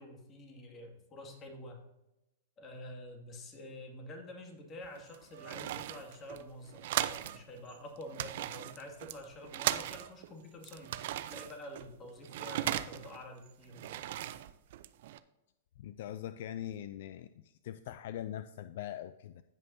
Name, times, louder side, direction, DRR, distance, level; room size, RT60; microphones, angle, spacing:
voice 1, 0.0-1.8 2.6-14.0, left 1 dB, 30° left, 2 dB, 2.3 m, -48 dB
sound 1, 4.8-7.4 7.7-10.3 10.6-13.2 13.6-15.2, right 13 dB, 60° right, 0.5 m, -37 dB
voice 2, 15.8-19.4, left 11 dB, 60° left, 12 dB, 0.4 m, -42 dB
16.5 x 5.5 x 2.7 m, 0.93 s
hypercardioid pair, 110°, 0 cm